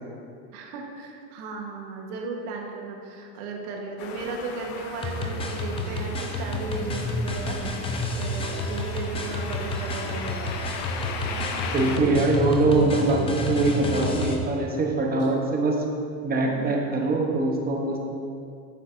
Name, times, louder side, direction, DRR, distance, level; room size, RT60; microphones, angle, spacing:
voice 1, 0.5-7.8 8.1-10.5 11.2-12.0 16.4-16.8, right 3 dB, 65° right, 0 dB, 1.6 m, -36 dB
sound 1, 4.0-12.0, left 5 dB, 60° left, 1.0 m, -37 dB
sound 2, 5.0-14.4, left 1 dB, 10° left, 0.5 m, -30 dB
voice 2, 11.7-15.8 16.2-18.0, right 2 dB, 20° right, 0 dB, 1.1 m, -23 dB
8.5 x 8.1 x 2.8 m, 2.4 s
supercardioid pair, 120°, 49 cm